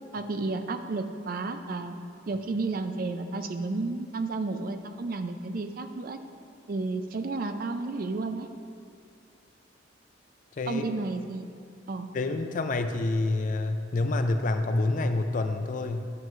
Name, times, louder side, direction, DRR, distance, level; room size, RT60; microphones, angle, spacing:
voice 1, 0.1-2.0 2.3-6.2 6.7-8.5 10.7-11.5 11.9-12.1, right 3 dB, 50° right, 7 dB, 0.4 m, -32 dB
voice 2, 12.1-16.1, left 2 dB, 45° left, 7 dB, 0.4 m, -27 dB
9.5 x 6.5 x 3.1 m, 2.4 s
head